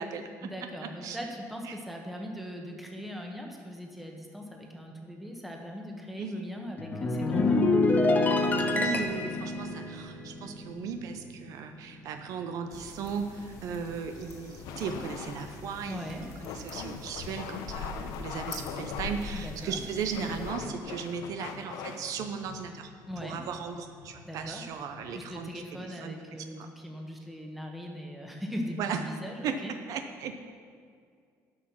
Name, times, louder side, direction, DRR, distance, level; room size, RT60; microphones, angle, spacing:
voice 1, 0.4-7.7 15.9-16.3 19.3-19.8 23.1-23.4 24.2-24.6 25.1-29.7, equal, ahead, 1 dB, 1.3 m, -40 dB
sound 1, 6.8-11.4 11.7-12.0, left 2 dB, 25° left, 0.9 m, -27 dB
voice 2, 8.6-16.1 16.5-22.9 23.2-26.2 26.6-26.7 28.8-29.0 29.4-30.4, right 6 dB, 60° right, 6 dB, 0.7 m, -36 dB
sound 2, 12.7-20.5, left 3 dB, 60° left, 1.8 m, -44 dB
sound 3, 14.6-25.7, left 6 dB, 75° left, 0.8 m, -42 dB
11.0 x 6.3 x 6.2 m, 2.2 s
cardioid pair, 135°, 7 cm